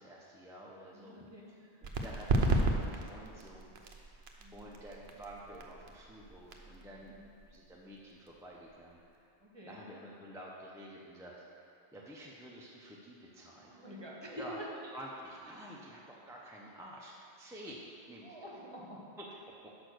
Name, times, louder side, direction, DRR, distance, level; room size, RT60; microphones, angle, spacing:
voice 1, 0.0-1.2 2.0-4.2 4.5-7.2 7.5-9.3 9.6-13.7 14.3-18.5 19.2-19.5, right 1 dB, 5° right, -4 dB, 0.5 m, -50 dB
voice 2, 0.9-1.8 4.4-4.6 7.0-7.2 9.4-9.8 13.7-14.7 15.5-15.8 18.2-19.1, equal, 25° right, -4 dB, 1.3 m, -48 dB
sound 1, 1.8-9.2, right 2 dB, 70° right, 0.9 m, -35 dB
6.4 x 5.1 x 6.3 m, 2.4 s
omnidirectional pair, 1.1 m